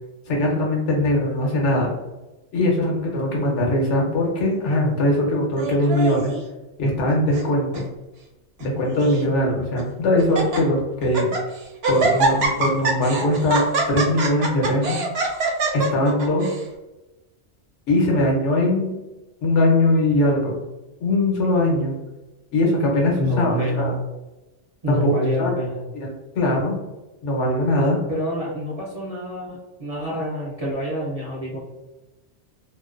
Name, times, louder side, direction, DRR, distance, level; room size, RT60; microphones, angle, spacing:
voice 1, 0.3-1.9 2.5-6.3 6.8-7.8 8.6-11.3 11.9-15.0 15.7-16.5 17.9-18.9 19.4-20.6 21.0-22.0 22.5-23.9 24.9-25.1 25.4-25.5 25.9-26.1 26.3-26.8 27.2-28.0, left 1 dB, 85° left, -1 dB, 1.1 m, -21 dB
Laughter, 5.6-6.4 7.1-7.5 7.7-7.8 8.6-9.2 9.8-9.9 10.2-10.6 11.0-11.4 11.8-16.6, right 3 dB, 65° right, 0.8 m, -24 dB
voice 2, 23.2-24.0 24.8-25.8 28.1-31.6, equal, 50° right, -5 dB, 0.5 m, -26 dB
2.5 x 2.1 x 2.3 m, 1.1 s
omnidirectional pair, 1.2 m